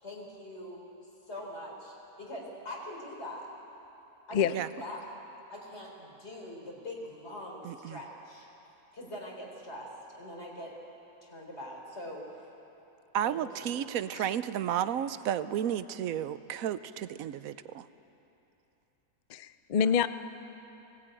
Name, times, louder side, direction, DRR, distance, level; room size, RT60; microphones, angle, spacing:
voice 1, 0.0-0.8 1.3-3.5 4.3-5.1 5.5-8.5 8.9-10.7 11.2-12.3 13.2-13.8 19.8-19.9, left 1 dB, 45° left, -1 dB, 4.0 m, -43 dB
voice 2, 7.6-8.0 13.1-17.5, right 10 dB, 70° right, 13 dB, 1.1 m, -32 dB
voice 3, 19.3-20.1, left 7 dB, 80° left, 12 dB, 0.4 m, -26 dB
20.0 x 18.0 x 9.1 m, 3.0 s
omnidirectional pair, 1.6 m